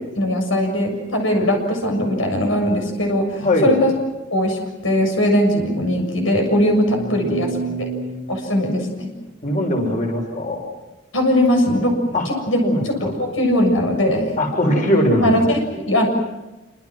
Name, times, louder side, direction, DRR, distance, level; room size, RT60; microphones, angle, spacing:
voice 1, 0.2-3.9 4.3-7.5 7.8-7.9 8.3-9.1 11.1-14.3 15.2-16.1, equal, 80° left, 3 dB, 7.1 m, -20 dB
voice 2, 3.4-3.8 6.9-8.7 9.4-10.6 12.1-12.2 12.6-12.8 14.4-15.5, equal, 40° left, 2 dB, 6.9 m, -21 dB
28.5 x 27.0 x 6.2 m, 1.1 s
head